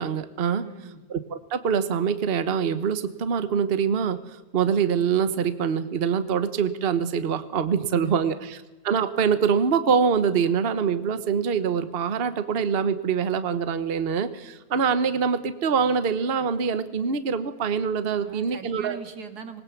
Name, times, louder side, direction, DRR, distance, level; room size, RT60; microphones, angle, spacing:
voice 1, 0.0-0.6 1.1-19.0, right 6 dB, 45° right, 12 dB, 1.2 m, -24 dB
voice 2, 0.6-1.0 8.1-8.5 18.2-19.6, right 6 dB, 85° right, 8 dB, 2.5 m, -41 dB
20.0 x 19.5 x 7.2 m, 1.1 s
omnidirectional pair, 1.6 m